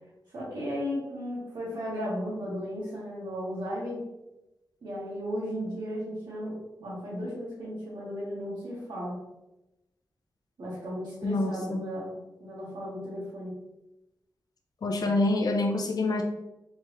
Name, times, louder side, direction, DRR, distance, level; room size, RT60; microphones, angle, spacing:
voice 1, 0.3-4.0 4.8-9.2 10.6-12.1 12.4-13.6, equal, 85° right, -9 dB, 1.4 m, -35 dB
voice 2, 11.2-11.8 14.8-16.2, left 2 dB, 60° left, 4 dB, 0.6 m, -26 dB
3.4 x 3.4 x 3.1 m, 0.94 s
wide cardioid pair, 110°, 7 cm